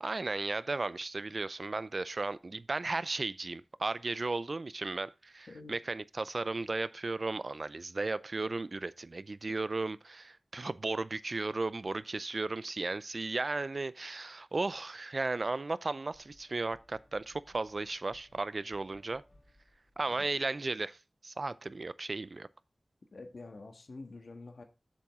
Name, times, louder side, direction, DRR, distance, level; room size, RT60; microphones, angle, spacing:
voice 1, 0.0-19.2 20.0-21.0 21.2-22.5, right 3 dB, 55° right, 0.5 m, -35 dB
sound 1, 16.1-20.6, left 1 dB, 25° left, 3.3 m, -64 dB
voice 2, 23.1-24.6, left 3 dB, 75° left, 1.6 m, -47 dB
7.5 x 7.2 x 3.6 m
wide cardioid pair, 65°, 0 cm